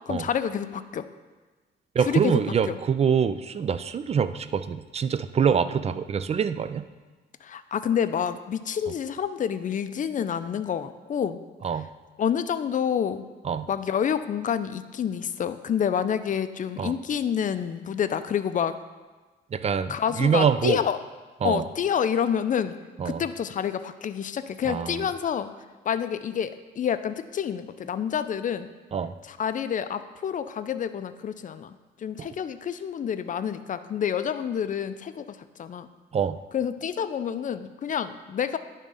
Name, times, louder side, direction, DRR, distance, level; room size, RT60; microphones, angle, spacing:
voice 1, 0.1-1.1 2.1-2.4 2.7-2.8 7.4-11.4 12.2-13.2 13.7-18.7 19.9-21.0 21.4-22.7 23.0-25.5 25.9-28.7 29.2-31.7 32.0-35.9 36.5-38.6, left 8 dB, 40° left, 11 dB, 0.5 m, -28 dB
voice 2, 1.9-6.9 11.6-11.9 13.4-13.7 16.8-17.0 19.5-20.8 21.4-21.7 23.0-23.2 24.7-25.1 28.9-29.2 32.2-32.3 36.1-36.4, right 7 dB, 30° right, 12 dB, 0.4 m, -25 dB
10.5 x 3.7 x 5.4 m, 1.3 s
cardioid pair, 90°, 20 cm